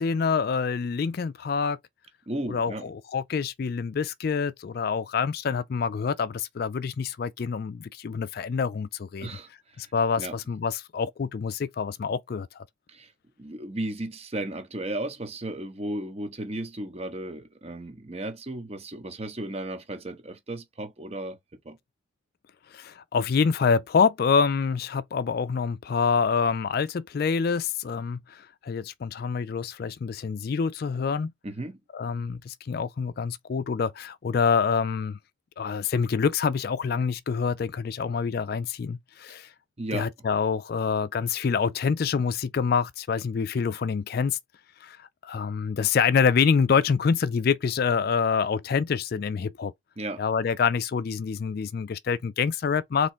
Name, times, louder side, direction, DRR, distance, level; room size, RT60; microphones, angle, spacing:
voice 1, 0.0-1.8 2.5-9.3 9.8-12.6 22.7-31.3 31.9-35.2 35.6-39.5 39.9-44.4 44.8-49.7 50.2-53.1, left 6 dB, 50° left, 0.3 m, -26 dB
voice 2, 2.3-2.9 9.2-9.8 10.2-10.3 12.9-13.1 13.4-21.4 21.6-21.8 31.4-31.8 39.8-40.1 50.0-50.2, right 1 dB, 30° right, 0.9 m, -35 dB
3.7 x 3.1 x 4.3 m
head